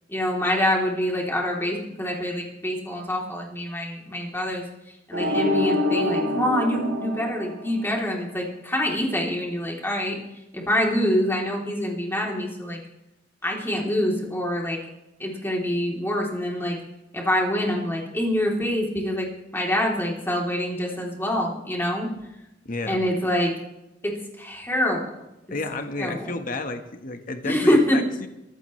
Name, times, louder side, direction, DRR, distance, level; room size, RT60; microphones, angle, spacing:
voice 1, 0.1-4.6 5.1-10.2 10.5-12.8 13.4-14.8 15.2-16.8 17.1-22.1 22.9-23.5 24.0-25.0 26.0-26.3 27.4-28.0, equal, 15° left, -2 dB, 3.3 m, -25 dB
sound 1, 5.1-8.1, left 2 dB, 80° right, 3.8 m, -25 dB
voice 2, 22.6-23.0 25.5-28.3, left 2 dB, 50° left, 6 dB, 1.4 m, -31 dB
23.0 x 15.5 x 3.3 m, 0.93 s
head